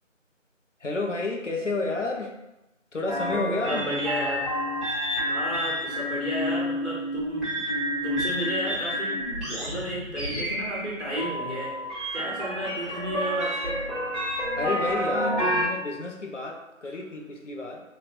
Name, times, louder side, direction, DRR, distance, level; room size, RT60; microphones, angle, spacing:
voice 1, 0.8-2.3 2.9-3.8 14.6-17.8, left 3 dB, 65° left, 1 dB, 0.6 m, -30 dB
sound 1, 3.1-15.6, equal, ahead, 0.7 m, -29 dB
voice 2, 3.7-4.5 5.3-7.7 8.0-9.2 9.6-11.7 12.1-13.8 16.8-17.0, equal, 60° right, -6 dB, 1.0 m, -32 dB
3.4 x 2.3 x 2.5 m, 0.96 s
figure-of-eight pair, 175°, 39 cm